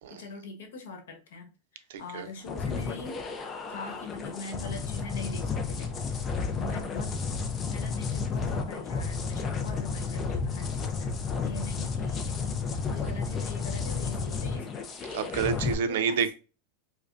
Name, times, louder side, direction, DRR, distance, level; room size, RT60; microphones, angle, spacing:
voice 1, 0.1-3.3 3.7-6.2 6.5-7.2 7.7-14.9 15.7-16.3, left 3 dB, 90° left, 1.2 m, -42 dB
voice 2, 1.9-2.3 15.1-16.3, right 6 dB, 65° right, 0.6 m, -29 dB
sound 1, 2.5-15.7, left 5 dB, 20° left, 0.4 m, -32 dB
4.9 x 2.2 x 2.4 m
supercardioid pair, 170°, 0 cm